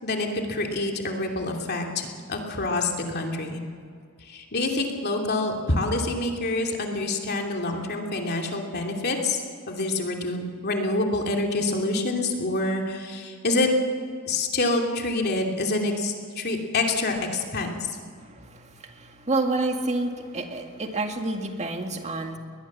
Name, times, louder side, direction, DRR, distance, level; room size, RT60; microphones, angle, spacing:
voice 1, 0.0-3.6 4.2-13.7 14.3-18.0, left 2 dB, 50° left, 2 dB, 2.8 m, -27 dB
voice 2, 18.2-22.4, right 2 dB, 30° right, 4 dB, 2.0 m, -29 dB
21.5 x 20.0 x 7.4 m, 2.2 s
head